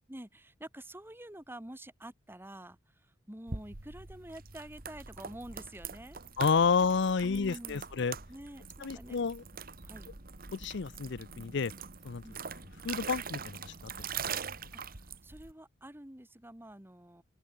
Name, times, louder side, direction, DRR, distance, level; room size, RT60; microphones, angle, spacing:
voice 1, 0.1-6.2 7.2-7.9 8.3-9.2 9.8-10.1 12.2-12.4 14.7-17.2, right 1 dB, 10° right, 2.0 m, -48 dB
sound 1, 3.5-15.5, right 6 dB, 50° right, 2.2 m, -43 dB
voice 2, 6.4-8.2 8.8-9.4 10.5-11.7 12.0-12.2 12.8-13.7, left 5 dB, 65° left, 0.6 m, -30 dB
open air
head